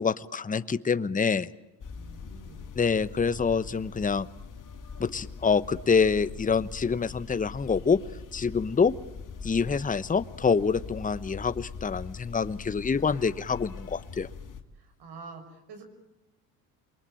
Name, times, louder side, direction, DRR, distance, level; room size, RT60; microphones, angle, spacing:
voice 1, 0.0-1.5 2.8-4.3 5.0-8.0 8.3-8.9 9.4-14.3, left 5 dB, 15° left, 15 dB, 1.0 m, -26 dB
sound 1, 1.8-14.6, left 5 dB, 40° left, 2.9 m, -42 dB
voice 2, 1.9-2.7 14.8-15.8, right 4 dB, 55° right, 6 dB, 6.1 m, -47 dB
28.5 x 23.0 x 9.0 m, 0.94 s
hypercardioid pair, 60°, 47 cm